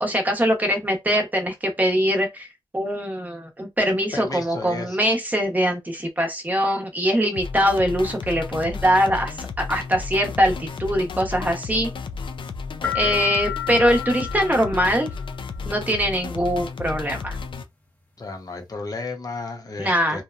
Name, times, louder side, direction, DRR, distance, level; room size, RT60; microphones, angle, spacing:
voice 1, 0.0-2.5 2.7-11.9 12.9-15.1 15.7-17.4 19.8-20.2, equal, 20° right, 0.8 m, -22 dB
voice 2, 4.1-5.0 12.8-13.3 15.8-16.0 18.2-20.2, left 3 dB, 45° left, 0.7 m, -34 dB
sound 1, 7.3-17.6, left 4 dB, 70° left, 0.4 m, -33 dB
sound 2, 12.8-15.5, left 11 dB, 15° left, 0.7 m, -31 dB
2.8 x 2.1 x 2.4 m
wide cardioid pair, 100°, 9 cm